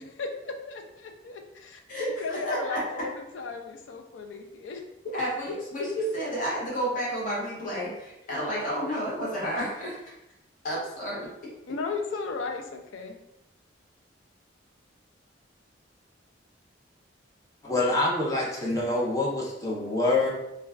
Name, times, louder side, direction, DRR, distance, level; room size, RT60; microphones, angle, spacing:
voice 1, 0.0-1.8 2.2-4.8 11.7-13.2, left 4 dB, 75° left, 5 dB, 0.4 m, -35 dB
voice 2, 1.9-2.8 5.1-10.0 10.6-11.3, equal, 40° left, -6 dB, 0.8 m, -31 dB
voice 3, 17.6-20.3, left 2 dB, 15° left, -4 dB, 0.4 m, -26 dB
2.3 x 2.2 x 3.3 m, 0.88 s
head